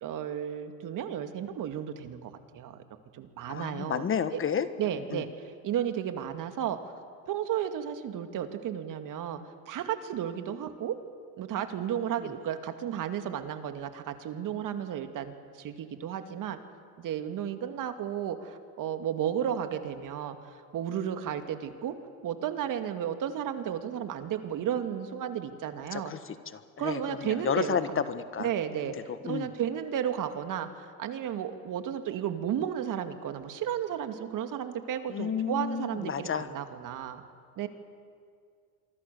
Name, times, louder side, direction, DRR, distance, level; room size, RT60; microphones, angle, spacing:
voice 1, 0.0-2.8 3.1-4.4 4.8-6.9 7.3-9.4 9.7-11.0 11.4-16.6 17.0-20.4 20.7-21.9 22.2-26.1 26.8-28.0 28.4-28.9 29.2-37.2 37.6-37.7, right 9 dB, 50° right, 7 dB, 2.4 m, -33 dB
voice 2, 3.5-4.7 5.1-5.2 25.9-26.2 26.5-28.5 29.2-29.5 35.1-36.5, left 7 dB, 30° left, 11 dB, 1.4 m, -31 dB
26.5 x 24.5 x 7.0 m, 2.2 s
supercardioid pair, 95°, 41 cm